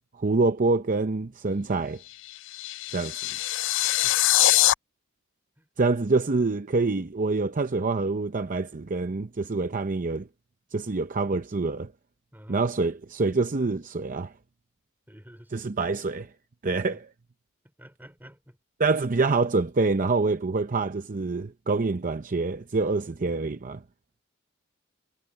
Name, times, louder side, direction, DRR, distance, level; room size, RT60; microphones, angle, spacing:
voice 1, 0.2-2.0 2.9-3.1 5.8-10.3 10.7-11.9 12.5-14.3 15.5-16.3 16.6-17.0 18.8-23.8, right 3 dB, 40° right, 0.7 m, -26 dB
sound 1, 2.1-4.7, left 15 dB, 65° left, 0.4 m, -23 dB
voice 2, 12.3-12.7 15.1-15.7 16.9-17.0 17.8-18.6, equal, 10° right, 4.9 m, -49 dB
head